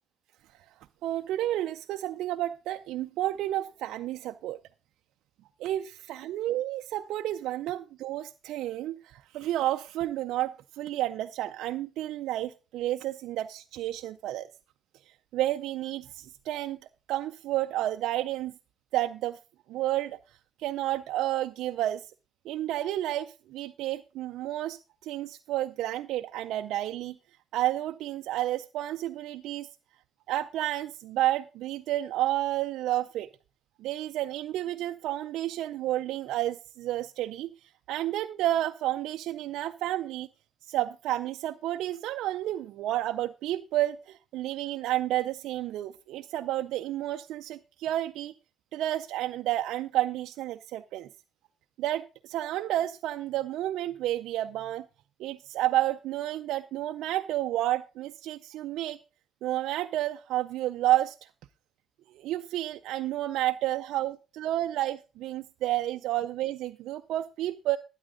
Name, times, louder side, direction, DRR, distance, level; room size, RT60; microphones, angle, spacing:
voice 1, 1.0-4.6 5.6-14.5 15.3-16.8 17.1-18.5 18.9-19.4 19.7-20.2 20.6-22.0 22.5-27.2 27.5-29.7 30.3-33.3 33.8-40.3 40.7-48.3 48.7-51.1 51.8-54.8 55.2-59.0 59.4-61.3 62.1-67.8, right 14 dB, 90° right, 0.4 m, -31 dB
12.5 x 9.9 x 3.9 m
cardioid pair, 90°, 0 cm